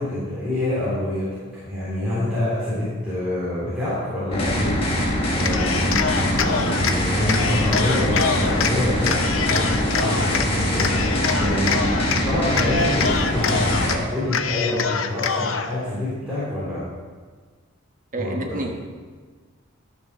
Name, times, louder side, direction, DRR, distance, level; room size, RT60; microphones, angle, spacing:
voice 1, 0.0-16.9 18.2-18.6, left 1 dB, 5° right, -12 dB, 3.7 m, -27 dB
sound 1, 4.3-14.0, equal, 30° left, 1.6 m, -23 dB
Cheering, 5.4-7.0 7.3-8.7 9.0-10.5 10.8-12.2 12.5-14.0 14.3-15.7, left 5 dB, 75° left, 0.7 m, -25 dB
voice 2, 18.1-18.8, right 2 dB, 40° right, 2 dB, 1.2 m, -29 dB
12.5 x 6.7 x 6.4 m, 1.5 s
head